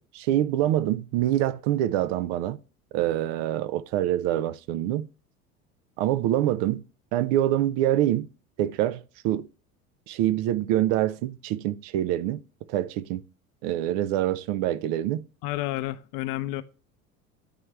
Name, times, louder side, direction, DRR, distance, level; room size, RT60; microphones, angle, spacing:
voice 1, 0.1-2.6 2.9-5.1 6.0-6.8 7.1-8.3 8.6-9.5 10.1-12.4 12.7-13.2 13.6-15.3, right 13 dB, 50° right, 0.4 m, -25 dB
voice 2, 15.4-16.6, left 16 dB, 50° left, 0.6 m, -30 dB
9.7 x 3.3 x 3.2 m
figure-of-eight pair, 70°, 42 cm